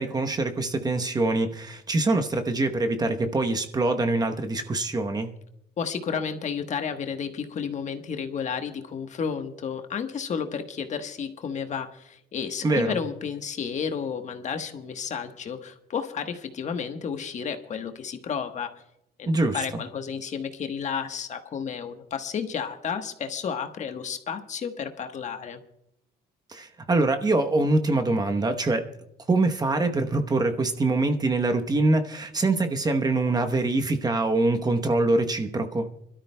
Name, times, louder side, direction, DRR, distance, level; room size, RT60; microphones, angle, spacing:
voice 1, 0.0-5.3 12.6-13.0 19.3-19.8 26.5-28.8 29.3-35.9, right 2 dB, 25° right, 6 dB, 1.0 m, -24 dB
voice 2, 5.8-18.7 19.2-25.6, left 6 dB, 45° left, 7 dB, 1.2 m, -32 dB
26.5 x 13.0 x 2.2 m, 0.80 s
cardioid pair, 110°, 17 cm